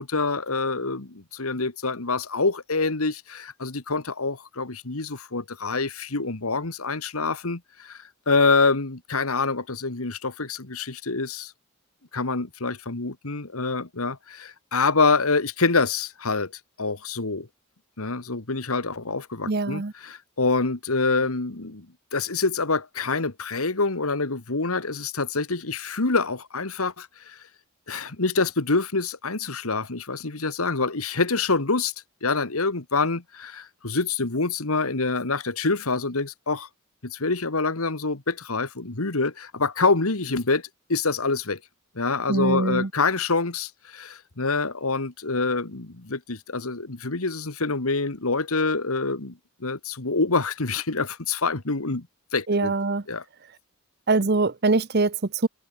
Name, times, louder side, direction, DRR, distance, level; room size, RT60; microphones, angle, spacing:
voice 1, 0.0-8.0 8.3-11.5 12.1-16.5 16.8-17.5 18.0-21.9 22.1-27.4 27.9-31.9 32.2-36.7 37.0-40.6 40.9-41.6 42.0-52.1 52.3-52.7 53.1-53.2, left 3 dB, 80° left, 1.8 m, -26 dB
voice 2, 19.5-19.9 42.3-42.9 52.5-53.0 54.1-55.5, right 3 dB, 50° right, 0.8 m, -23 dB
open air
head